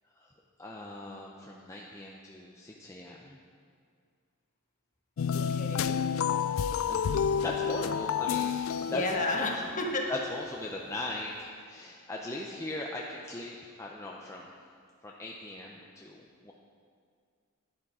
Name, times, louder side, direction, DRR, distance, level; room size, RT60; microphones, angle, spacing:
voice 1, 0.6-3.4 6.9-7.1 7.4-9.0 9.4-9.5 10.1-14.5 15.0-16.5, left 2 dB, 15° left, -2 dB, 0.6 m, -39 dB
sound 1, 5.2-9.8, left 7 dB, 65° left, 0.3 m, -30 dB
voice 2, 5.3-6.0 8.8-10.1, left 2 dB, 35° left, 0 dB, 1.5 m, -32 dB
11.0 x 10.0 x 4.9 m, 2.1 s
head